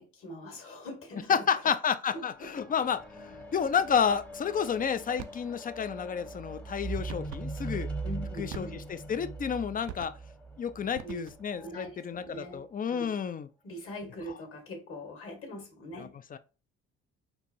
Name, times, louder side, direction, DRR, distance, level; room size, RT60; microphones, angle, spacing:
voice 1, 0.0-1.7 2.1-2.5 8.0-8.8 11.0-11.2 11.6-13.2 13.6-16.1, equal, 45° left, 1.5 m, -42 dB
voice 2, 1.3-7.9 8.4-10.1 10.6-13.5 16.0-16.4, left 7 dB, 25° left, 0.4 m, -30 dB
sound 1, 2.2-11.7 12.5-12.6, right 3 dB, 5° left, 0.8 m, -41 dB
sound 2, 5.2-5.5 7.1-7.5 8.5-9.0 9.9-10.4 10.9-11.6, right 9 dB, 65° right, 0.5 m, -44 dB
4.5 x 2.5 x 2.6 m
hypercardioid pair, 60°, 32 cm